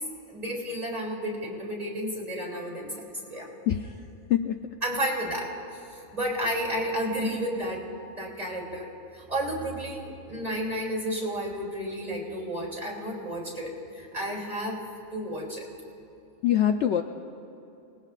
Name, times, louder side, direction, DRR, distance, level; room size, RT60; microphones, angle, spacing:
voice 1, 0.3-3.5 4.8-5.5 6.1-7.8 8.1-14.8 15.1-15.6, equal, 25° right, -4 dB, 3.1 m, -32 dB
voice 2, 3.7-4.0 4.3-4.5 16.4-17.0, left 10 dB, 65° left, 5 dB, 0.8 m, -24 dB
28.5 x 19.5 x 2.5 m, 2.8 s
omnidirectional pair, 1.5 m